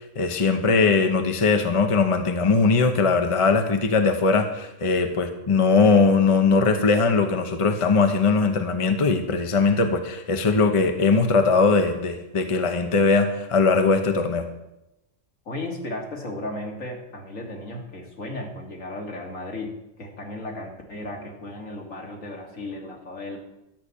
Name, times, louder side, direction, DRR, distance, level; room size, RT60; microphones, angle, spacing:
voice 1, 0.2-14.5, left 4 dB, 25° left, 6 dB, 0.9 m, -20 dB
voice 2, 15.5-19.7 20.0-23.4, left 2 dB, 80° left, 1 dB, 2.5 m, -35 dB
12.0 x 5.9 x 8.5 m, 0.91 s
omnidirectional pair, 1.4 m